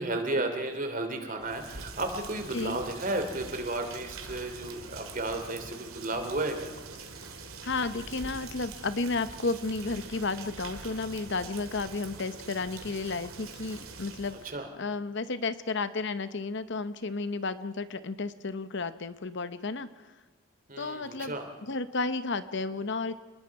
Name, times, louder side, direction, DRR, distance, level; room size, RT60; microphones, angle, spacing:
voice 1, 0.0-6.7 14.4-14.7 20.7-21.5, right 2 dB, 40° right, 6 dB, 2.9 m, -33 dB
Rain, 1.4-14.6, right 4 dB, 80° right, 2.9 m, -44 dB
voice 2, 7.6-14.4 14.8-19.9 20.8-21.4 21.7-23.1, left 3 dB, 55° left, 13 dB, 0.9 m, -32 dB
29.0 x 20.5 x 4.8 m, 1.3 s
head